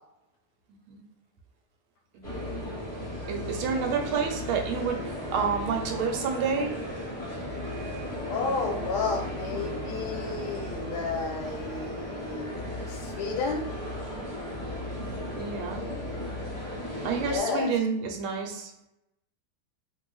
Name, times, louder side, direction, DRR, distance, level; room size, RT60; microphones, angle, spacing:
sound 1, 2.2-17.4, left 1 dB, 25° left, 1.0 m, -35 dB
voice 1, 3.3-6.7 10.8-10.9 15.0-15.8 17.0-18.7, right 6 dB, 80° right, 3 dB, 1.4 m, -29 dB
voice 2, 7.9-12.5 12.9-13.7 17.2-17.7, left 4 dB, 90° left, 2 dB, 1.5 m, -32 dB
3.2 x 2.6 x 3.0 m, 0.87 s
omnidirectional pair, 2.3 m